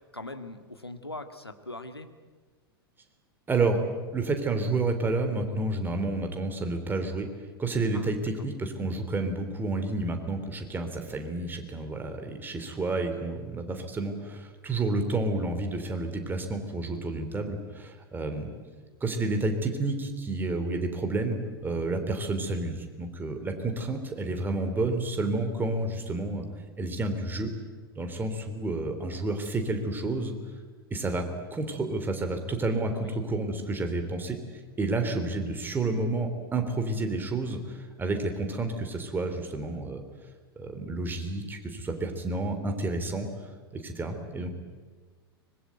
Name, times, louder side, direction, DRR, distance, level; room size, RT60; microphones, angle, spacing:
voice 1, 0.1-2.1 7.9-8.1 23.9-24.0 32.9-33.3 44.1-44.3, left 2 dB, 85° left, 8 dB, 1.8 m, -41 dB
voice 2, 3.5-3.8 4.1-7.3 7.6-18.5 19.0-26.5 26.8-27.5 28.0-30.3 30.9-34.4 34.8-40.0 40.6-43.3 43.7-44.5, right 2 dB, 15° right, 6 dB, 3.7 m, -30 dB
24.5 x 21.5 x 9.3 m, 1.4 s
figure-of-eight pair, 90°, 13 cm